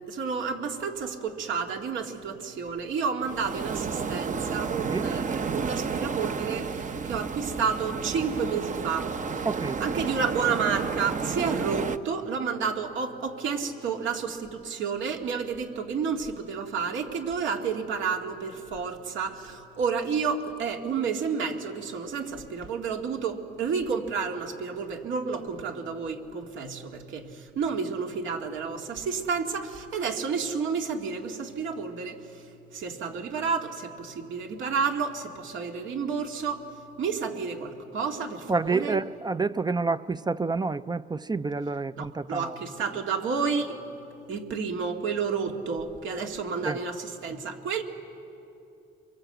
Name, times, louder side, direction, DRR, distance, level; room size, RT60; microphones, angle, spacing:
voice 1, 0.1-9.1 9.4-9.5 9.8-32.5 32.7-36.7 37.0-39.0 42.0-43.8 44.3-47.8, right 5 dB, 75° right, 2.2 m, -30 dB
sound 1, 3.2-12.0, right 5 dB, 40° right, 0.9 m, -31 dB
voice 2, 9.4-9.8 38.5-42.5 46.6-46.8, right 4 dB, 20° right, 0.5 m, -28 dB
26.0 x 23.0 x 7.9 m
cardioid pair, 90°, 20 cm